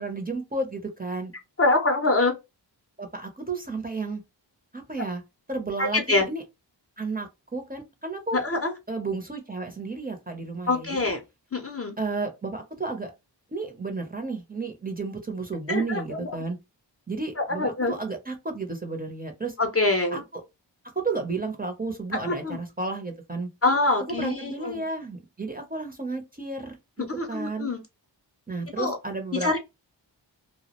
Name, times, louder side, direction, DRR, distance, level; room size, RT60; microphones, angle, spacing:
voice 1, 0.0-1.3 3.0-4.2 4.7-5.2 5.5-6.4 7.0-8.4 8.9-11.1 12.0-13.1 13.5-16.6 17.1-19.5 20.1-20.2 21.0-23.5 24.1-27.7 28.5-29.5, right 3 dB, 20° right, 0.6 m, -32 dB
voice 2, 1.6-2.3 5.8-6.3 8.3-8.7 10.7-11.2 11.5-12.0 15.7-16.4 17.4-17.9 19.6-20.2 22.2-22.6 23.6-24.8 27.1-27.8 28.8-29.0 29.4-29.6, left 2 dB, 30° left, 0.6 m, -25 dB
2.2 x 2.0 x 2.8 m
wide cardioid pair, 60°, 44 cm